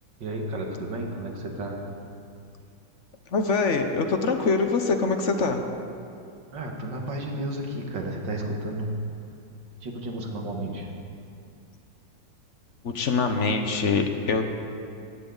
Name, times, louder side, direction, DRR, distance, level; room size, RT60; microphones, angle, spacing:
voice 1, 0.2-1.9 6.5-9.1 9.8-10.9, right 1 dB, 75° right, 1 dB, 2.3 m, -32 dB
voice 2, 3.3-5.6 12.8-14.5, left 4 dB, 50° left, 6 dB, 1.1 m, -24 dB
18.0 x 15.5 x 3.9 m, 2.5 s
omnidirectional pair, 2.0 m